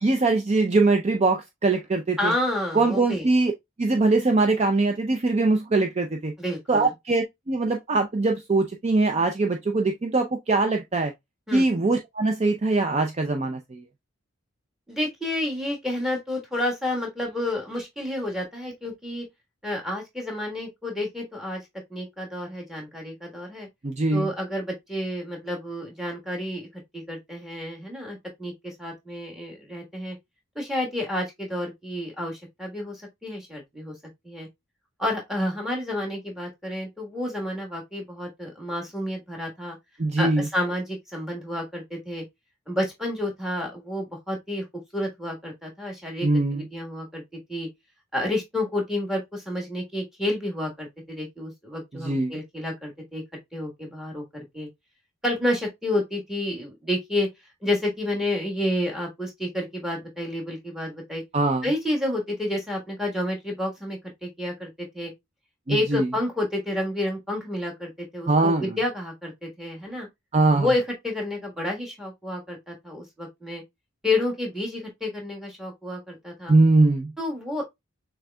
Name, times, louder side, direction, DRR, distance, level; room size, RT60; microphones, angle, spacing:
voice 1, 0.0-2.3 2.7-3.5 3.8-6.3 6.7-11.1 11.5-13.8 23.8-24.3 40.0-40.5 46.2-46.7 51.9-52.4 61.3-61.7 65.7-66.1 68.3-68.8 70.3-70.7 76.5-77.1, right 3 dB, 30° right, 0.4 m, -22 dB
voice 2, 2.2-3.2 6.4-6.9 11.5-11.7 14.9-19.3 19.6-21.6 21.9-23.7 24.1-26.7 26.9-30.1 30.5-33.9 34.2-34.5 35.0-39.8 40.2-42.2 42.7-44.6 44.9-47.2 47.5-47.7 48.1-53.2 53.5-54.7 55.2-57.3 57.6-61.2 61.6-64.7 64.9-65.1 65.7-70.1 70.5-73.6 74.0-76.5 77.2-77.6, left 1 dB, ahead, 1.3 m, -30 dB
6.2 x 3.4 x 2.2 m
head